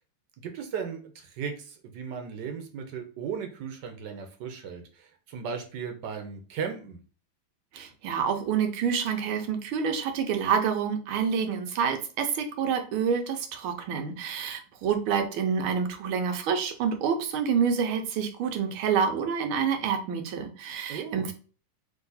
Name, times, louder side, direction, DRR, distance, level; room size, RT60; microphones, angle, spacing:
voice 1, 0.4-7.0 20.9-21.3, right 6 dB, 65° right, 5 dB, 1.3 m, -36 dB
voice 2, 7.7-21.3, right 6 dB, 90° right, 5 dB, 1.6 m, -28 dB
3.8 x 2.9 x 3.9 m, 0.39 s
omnidirectional pair, 2.3 m